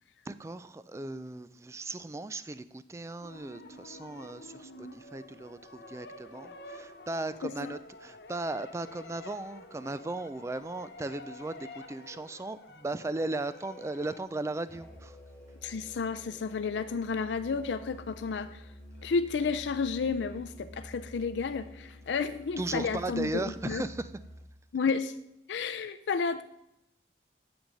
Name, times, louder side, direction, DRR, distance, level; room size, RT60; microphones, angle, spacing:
voice 1, 0.3-15.2 22.6-24.1, right 2 dB, 15° right, 14 dB, 0.3 m, -37 dB
sound 1, 3.2-14.2, left 2 dB, 70° left, 0.8 m, -49 dB
voice 2, 7.4-7.7 15.6-18.7 19.0-23.9 24.7-25.2 25.5-26.4, left 5 dB, 85° left, 11 dB, 0.4 m, -32 dB
Musical instrument, 14.7-24.6, equal, 5° left, 1.5 m, -49 dB
8.9 x 7.0 x 5.2 m, 0.83 s
head